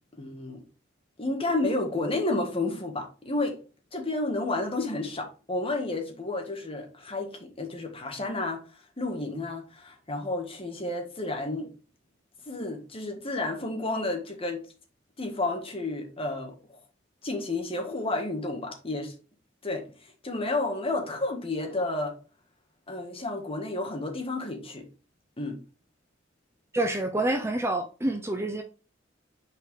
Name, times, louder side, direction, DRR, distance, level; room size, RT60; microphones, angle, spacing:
voice 1, 0.2-0.6 1.2-3.6 3.9-8.6 9.0-11.7 12.5-14.6 15.2-16.8 17.2-19.2 19.6-19.9 20.2-22.2 22.9-24.8 25.4-25.6, left 2 dB, 30° left, 1.6 m, -31 dB
voice 2, 26.7-28.6, right 1 dB, 15° right, 0.6 m, -27 dB
5.7 x 4.6 x 3.7 m
head